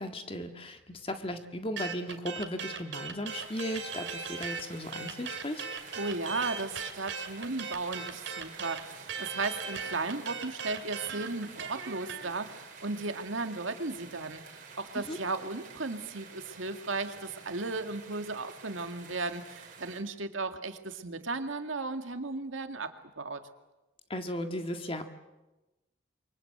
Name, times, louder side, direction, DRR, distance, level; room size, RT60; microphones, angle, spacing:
voice 1, 0.0-5.6 15.1-15.2 24.1-25.1, left 1 dB, 30° left, 6 dB, 1.7 m, -36 dB
sound 1, 1.8-4.6 4.9-12.3, right 5 dB, 65° right, 2.5 m, -38 dB
sound 2, 3.3-20.0, right 5 dB, 40° right, 4.2 m, -49 dB
voice 2, 6.0-22.9 23.2-23.4, right 3 dB, 85° right, 7 dB, 2.1 m, -35 dB
28.5 x 24.0 x 7.9 m, 1.0 s
head